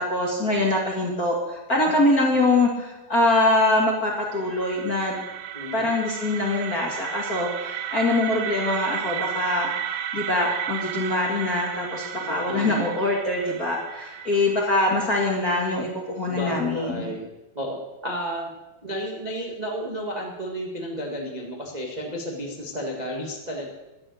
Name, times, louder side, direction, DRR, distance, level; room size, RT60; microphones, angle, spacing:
voice 1, 0.0-5.2 5.7-17.1, left 2 dB, 35° left, -2 dB, 1.7 m, -24 dB
sound 1, 3.9-15.7, right 10 dB, 90° right, 2.6 m, -34 dB
voice 2, 5.5-5.9 12.2-12.7 16.3-17.2 17.5-17.8 18.0-18.5 18.8-23.7, equal, 20° right, -1 dB, 1.0 m, -32 dB
13.5 x 11.0 x 6.5 m, 1.0 s
omnidirectional pair, 4.2 m